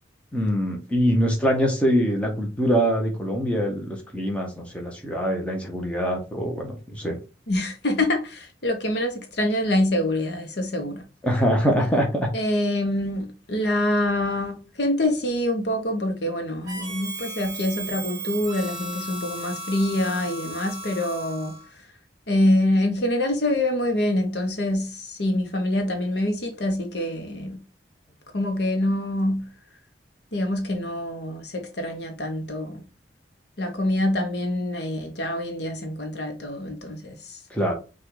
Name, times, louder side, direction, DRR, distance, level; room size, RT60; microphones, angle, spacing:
voice 1, 0.3-7.2 10.9-12.3 37.5-37.7, equal, 5° left, 0.9 m, -24 dB
voice 2, 7.5-11.0 12.3-21.5 22.3-27.6 28.3-29.4 30.3-32.8 33.6-37.4, left 1 dB, 65° left, 0.9 m, -25 dB
Harmonica, 16.7-21.7, right 2 dB, 20° right, 1.1 m, -35 dB
5.7 x 2.4 x 3.8 m
head